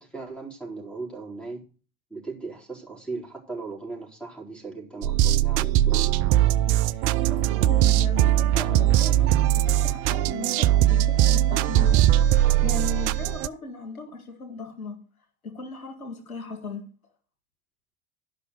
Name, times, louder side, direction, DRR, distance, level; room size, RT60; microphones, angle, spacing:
voice 1, 0.0-1.6 2.1-6.2, right 3 dB, ahead, 4.1 m, -37 dB
sound 1, 5.0-13.5, right 13 dB, 50° right, 0.5 m, -21 dB
voice 2, 6.9-12.0 12.6-15.0 15.4-16.8, left 3 dB, 80° left, 1.9 m, -37 dB
12.0 x 5.7 x 6.6 m
figure-of-eight pair, 65°, 42 cm